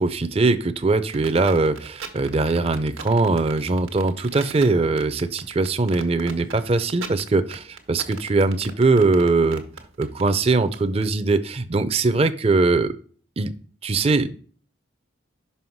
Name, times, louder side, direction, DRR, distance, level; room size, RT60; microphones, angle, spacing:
voice 1, 0.0-9.6 10.0-12.9 13.4-13.5 13.8-14.4, right 3 dB, 30° right, 11 dB, 0.5 m, -21 dB
sound 1, 1.1-11.1, right 6 dB, 85° right, 1.1 m, -39 dB
5.7 x 5.6 x 4.5 m, 0.43 s
head